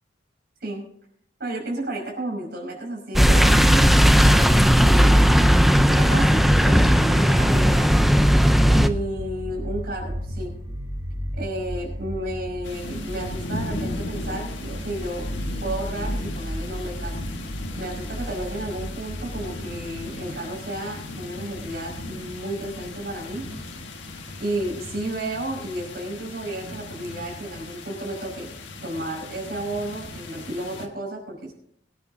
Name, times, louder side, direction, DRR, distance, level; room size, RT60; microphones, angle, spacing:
voice 1, 1.4-5.3 5.9-8.0 8.7-10.6 11.4-15.4 15.6-17.2 17.5-23.4 24.4-31.5, right 1 dB, 60° right, -2 dB, 5.5 m, -32 dB
sound 1, 3.2-8.9, equal, ahead, 0.5 m, -16 dB
sound 2, 8.3-25.4, equal, 25° right, 6.5 m, -35 dB
sound 3, 12.6-30.9, left 2 dB, 75° left, 1.6 m, -37 dB
23.5 x 9.7 x 2.8 m, 0.65 s
head